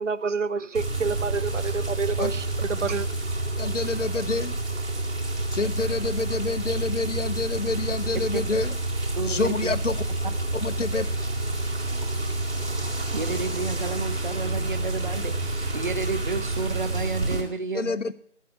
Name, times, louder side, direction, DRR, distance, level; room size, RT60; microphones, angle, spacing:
voice 1, 0.0-3.1, right 5 dB, 85° right, 0.6 m, -28 dB
sound 1, 0.7-17.4, right 2 dB, 65° right, 4.0 m, -28 dB
voice 2, 3.6-4.5 5.5-8.7 9.3-10.0 10.6-11.1 17.7-18.1, left 3 dB, 85° left, 0.8 m, -27 dB
voice 3, 9.1-9.5 13.1-17.9, right 4 dB, 45° right, 0.8 m, -31 dB
8.5 x 8.4 x 8.8 m
figure-of-eight pair, 155°, 36 cm